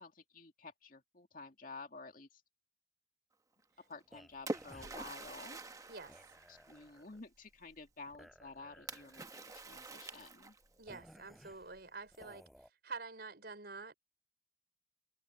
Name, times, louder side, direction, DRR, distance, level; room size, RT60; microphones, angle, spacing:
voice 1, 0.0-2.4 3.8-5.6 6.5-10.6, left 3 dB, 50° left, 2.2 m, -52 dB
Splash splatter, 3.9-7.1 8.9-10.8, right 2 dB, 20° right, 1.0 m, -46 dB
sound 1, 4.1-12.7, equal, ahead, 5.4 m, -60 dB
voice 2, 5.9-6.3 10.8-12.4 12.8-13.9, right 4 dB, 60° right, 4.6 m, -47 dB
head